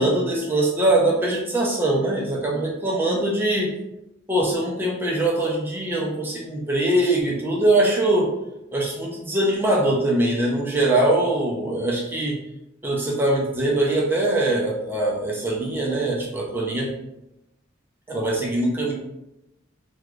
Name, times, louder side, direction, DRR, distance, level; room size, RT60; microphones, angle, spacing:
voice 1, 0.0-3.7 4.3-8.3 8.7-12.4 12.8-16.9 18.1-18.9, right 1 dB, 10° right, -3 dB, 0.5 m, -22 dB
3.1 x 2.3 x 2.4 m, 0.90 s
head